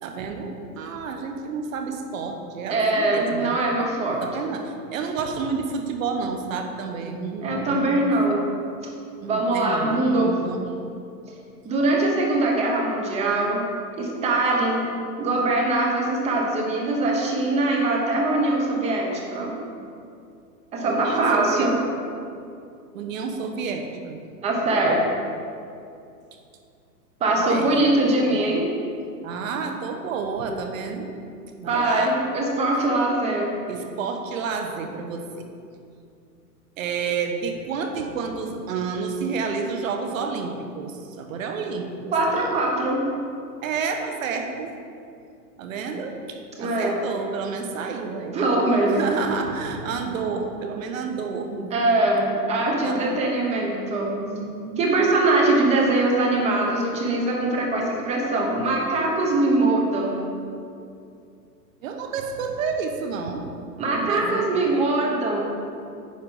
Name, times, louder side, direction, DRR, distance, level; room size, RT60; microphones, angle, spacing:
voice 1, 0.0-3.6 4.1-8.1 8.5-8.6 9.2-10.7 20.8-21.7 22.9-24.2 27.3-28.4 29.2-31.1 31.6-32.1 33.7-35.5 36.8-42.6 43.6-44.7 45.6-48.4 48.9-51.7 52.0-52.1 52.8-53.2 54.3-54.9 61.8-63.5 63.9-64.6, right 5 dB, 50° right, 4 dB, 1.2 m, -30 dB
voice 2, 2.7-4.2 7.4-8.4 9.3-10.4 11.6-13.6 13.9-14.9 15.2-19.5 20.7-21.7 24.4-25.0 27.2-28.6 31.6-33.5 42.1-43.0 46.6-47.0 48.3-49.0 51.7-54.1 54.8-60.2 63.8-65.5, right 2 dB, 15° right, -1 dB, 0.9 m, -22 dB
9.7 x 4.8 x 5.4 m, 2.5 s
hypercardioid pair, 150°, 49 cm